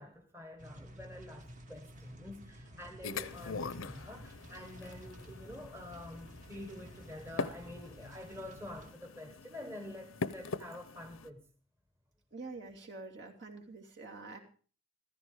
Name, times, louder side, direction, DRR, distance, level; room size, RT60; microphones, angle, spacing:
voice 1, 0.0-11.4, left 1 dB, 15° right, 1.3 m, -47 dB
sound 1, 0.6-8.9, equal, 40° right, 1.6 m, -52 dB
sound 2, 3.0-11.3, left 4 dB, 85° left, 0.8 m, -43 dB
voice 2, 12.3-14.4, right 3 dB, 60° right, 2.8 m, -46 dB
15.0 x 14.0 x 4.9 m
head